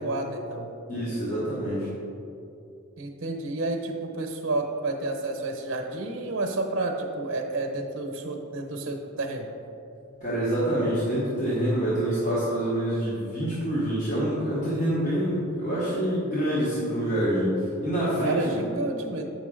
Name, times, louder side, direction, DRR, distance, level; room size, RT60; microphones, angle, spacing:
voice 1, 0.0-0.7 3.0-9.5 18.2-19.2, right 2 dB, 60° right, 3 dB, 0.9 m, -30 dB
voice 2, 0.9-1.9 10.2-18.6, right 1 dB, 35° left, -10 dB, 1.3 m, -26 dB
8.0 x 5.7 x 3.8 m, 2.8 s
head